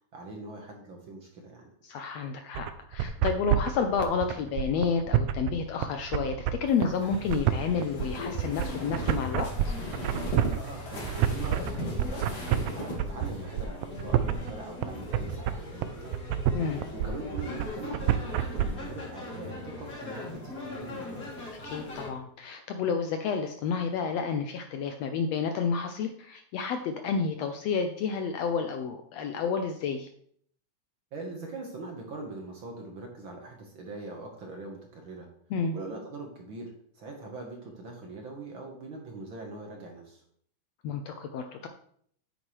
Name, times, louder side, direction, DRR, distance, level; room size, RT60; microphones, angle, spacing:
voice 1, 0.1-1.7 10.6-16.1 16.7-21.5 31.1-35.3 35.7-40.2, right 2 dB, 50° right, 1 dB, 1.7 m, -42 dB
voice 2, 1.8-9.7 16.5-16.8 21.6-30.1 35.5-35.8 40.8-41.7, left 5 dB, 75° left, 6 dB, 1.6 m, -30 dB
sound 1, 2.5-18.7, right 11 dB, 85° right, 1.5 m, -28 dB
sound 2, 6.7-13.0, equal, 55° left, 3.4 m, -38 dB
sound 3, 7.0-22.1, left 2 dB, 30° left, 3.1 m, -41 dB
9.2 x 9.2 x 3.2 m, 0.63 s
omnidirectional pair, 3.5 m